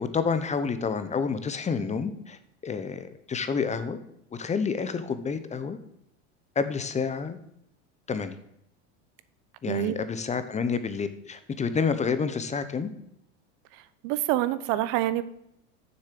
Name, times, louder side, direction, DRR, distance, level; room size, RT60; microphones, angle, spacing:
voice 1, 0.0-2.4 2.6-4.0 4.4-5.8 6.6-7.4 8.1-8.4 9.6-12.9, left 5 dB, 20° left, 11 dB, 0.8 m, -29 dB
voice 2, 9.6-10.0 13.7-15.2, right 14 dB, 60° right, 15 dB, 0.8 m, -27 dB
7.0 x 6.5 x 7.6 m, 0.77 s
supercardioid pair, 115°, 35 cm